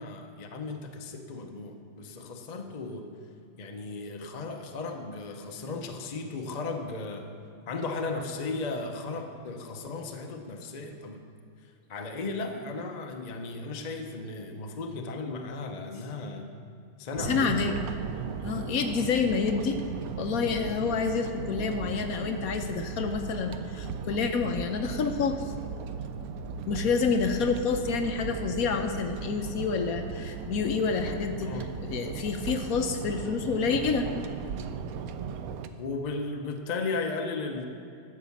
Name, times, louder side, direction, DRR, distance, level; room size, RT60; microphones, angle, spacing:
voice 1, 0.0-3.1 3.6-7.3 7.7-11.2 11.9-16.5 17.0-17.6 31.4-31.8 35.7-37.6, left 3 dB, 45° left, 4 dB, 0.5 m, -35 dB
voice 2, 17.2-17.8 18.4-19.8 20.2-25.4 26.7-31.5 31.8-34.2, left 5 dB, 65° left, 6 dB, 1.0 m, -28 dB
sound 1, 17.2-35.7, right 6 dB, 70° right, 0.9 m, -37 dB
12.0 x 5.5 x 7.2 m, 2.6 s
omnidirectional pair, 1.8 m